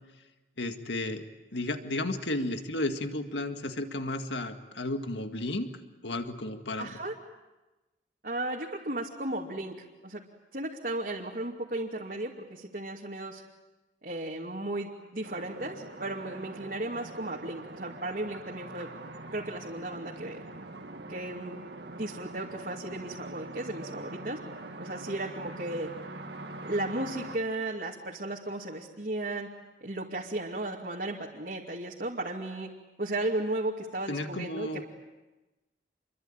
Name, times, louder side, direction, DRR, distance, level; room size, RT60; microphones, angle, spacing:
voice 1, 0.6-1.2 1.5-5.7 6.0-7.0 34.1-34.8, left 1 dB, 85° left, 6 dB, 2.0 m, -33 dB
voice 2, 6.8-7.1 8.2-10.2 10.5-13.4 14.0-18.9 19.3-20.4 21.1-21.5 21.8-24.4 24.8-25.9 26.6-29.5 29.8-32.7 33.0-34.8, right 1 dB, 55° right, -3 dB, 2.5 m, -35 dB
sound 1, 15.2-27.4, right 2 dB, 80° right, 2.0 m, -43 dB
28.0 x 23.0 x 8.9 m, 1.1 s
head